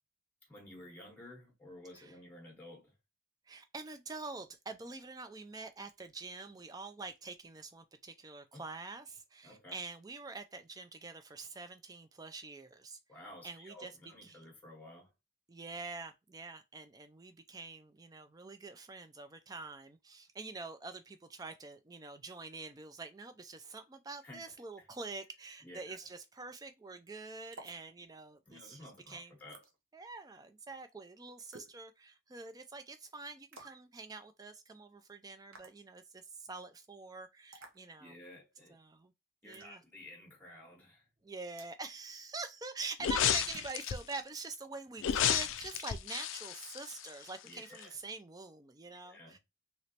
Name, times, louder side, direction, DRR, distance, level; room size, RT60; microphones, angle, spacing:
voice 1, 0.4-2.9 8.5-8.6 9.4-9.8 13.1-15.1 24.2-24.9 25.6-26.0 28.5-29.6 38.0-38.8 39.4-41.1 47.4-47.9 48.9-49.4, left 1 dB, 10° left, 0.8 m, -53 dB
voice 2, 3.5-13.0 13.4-13.9 14.2-14.4 15.5-29.4 29.9-38.2 38.7-39.1 39.4-39.8 41.2-49.4, right 3 dB, 20° right, 0.3 m, -46 dB
sound 1, 27.5-27.8 29.5-29.7 31.5-31.8 33.5-33.9 35.5-35.8 37.5-37.8 39.5-39.7 41.6-41.8 43.5-43.8, right 3 dB, 85° right, 0.8 m, -52 dB
sound 2, 43.0-44.2 45.0-47.5 47.8-47.9, left 9 dB, 75° left, 0.4 m, -32 dB
3.1 x 2.9 x 2.8 m
head